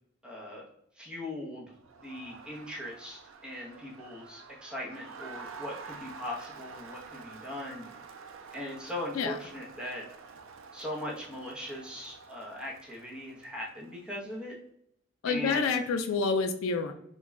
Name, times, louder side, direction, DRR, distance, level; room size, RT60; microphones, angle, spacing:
voice 1, 0.2-0.7 0.9-7.9 8.5-10.0 10.7-14.6 15.3-15.9, left 1 dB, 5° right, -3 dB, 0.6 m, -40 dB
Crowd, 1.8-14.3, right 5 dB, 75° right, 0.4 m, -49 dB
voice 2, 15.2-16.9, left 4 dB, 85° left, 6 dB, 0.4 m, -28 dB
3.1 x 2.2 x 3.5 m, 0.72 s
head